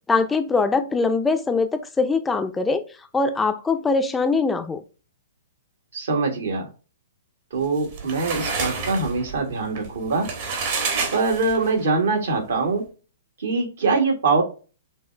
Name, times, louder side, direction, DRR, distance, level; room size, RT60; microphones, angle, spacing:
voice 1, 0.1-2.8 3.1-4.8, left 4 dB, 10° left, 0.5 m, -22 dB
voice 2, 5.9-6.7 7.5-10.3 11.1-12.8 13.4-14.4, right 3 dB, 70° right, 1.5 m, -23 dB
sound 1, 7.6-11.8, right 4 dB, 50° right, 1.3 m, -29 dB
6.3 x 2.4 x 3.2 m
figure-of-eight pair, 120°, 0 cm